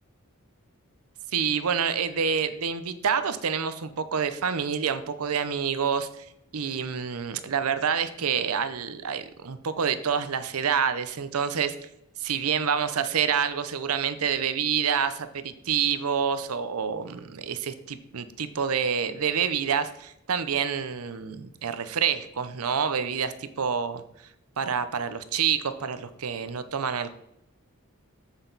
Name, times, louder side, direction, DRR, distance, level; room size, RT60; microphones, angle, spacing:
voice 1, 1.3-6.3 6.5-11.8 12.2-23.3 23.6-24.0 24.6-27.2, right 7 dB, 80° right, 12 dB, 0.7 m, -27 dB
8.1 x 8.0 x 4.0 m, 0.81 s
head